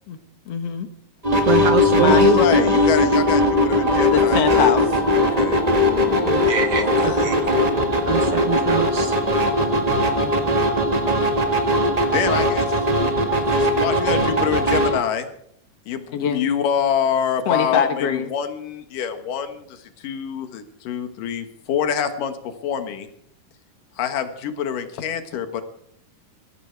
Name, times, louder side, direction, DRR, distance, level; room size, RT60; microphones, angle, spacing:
voice 1, 0.5-0.9 1.9-2.4 4.1-4.8 5.9-6.5 10.0-10.7 16.1-16.5 17.5-18.3, left 7 dB, 60° left, 8 dB, 2.1 m, -24 dB
sound 1, 1.2-15.0, left 1 dB, 20° right, 1.2 m, -19 dB
voice 2, 1.4-2.5 6.5-7.5 8.1-9.2, right 7 dB, 70° right, 8 dB, 1.4 m, -23 dB
voice 3, 2.1-4.8 5.2-6.3 6.7-7.3 12.1-12.7 13.5-15.3 15.9-22.4 22.6-23.1 24.0-25.6, left 8 dB, 85° left, 8 dB, 3.1 m, -26 dB
21.0 x 15.0 x 4.6 m, 0.69 s
omnidirectional pair, 3.7 m